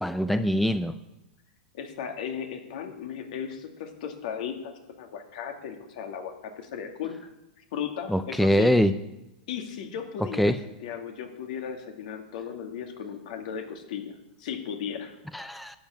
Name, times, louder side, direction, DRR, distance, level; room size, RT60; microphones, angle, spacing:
voice 1, 0.0-0.9 8.1-8.9 10.4-10.6 15.3-15.8, equal, ahead, 11 dB, 0.5 m, -23 dB
voice 2, 1.7-7.2 7.7-8.7 9.5-15.2, left 8 dB, 65° left, 4 dB, 2.2 m, -36 dB
12.5 x 7.2 x 8.9 m, 0.94 s
hypercardioid pair, 125°, 5 cm